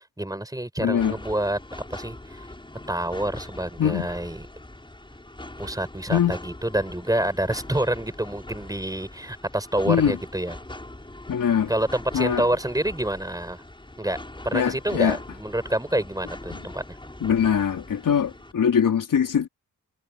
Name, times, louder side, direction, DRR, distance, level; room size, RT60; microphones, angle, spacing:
voice 1, 0.0-1.6 1.9-2.5 2.9-4.5 5.6-10.6 11.7-13.6 14.0-14.2 14.4-17.0, right 1 dB, 10° right, 5.2 m, -27 dB
voice 2, 0.8-1.2 3.8-4.1 6.1-6.4 9.9-10.2 11.3-11.7 12.1-12.5 14.5-15.2 16.5-16.6 17.2-19.5, left 8 dB, 80° left, 3.7 m, -22 dB
sound 1, 1.0-18.5, left 1 dB, 15° left, 5.8 m, -42 dB
cardioid pair, 80°, 32 cm